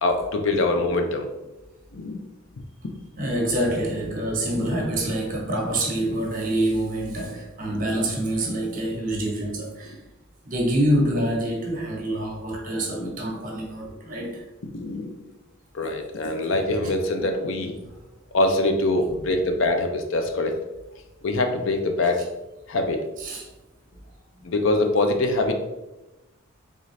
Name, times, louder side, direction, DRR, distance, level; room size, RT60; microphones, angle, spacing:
voice 1, 0.0-1.3 1.9-2.2 4.5-4.7 7.8-8.0 13.0-13.1 14.2-14.3 14.7-15.3 15.7-17.7 18.3-20.6 21.2-22.2 22.7-23.0 24.4-25.5, left 2 dB, 60° left, 5 dB, 0.5 m, -24 dB
voice 2, 3.2-10.0 10.4-14.5 23.2-23.4, right 1 dB, 40° right, -1 dB, 1.1 m, -26 dB
4.0 x 3.7 x 3.2 m, 1.0 s
head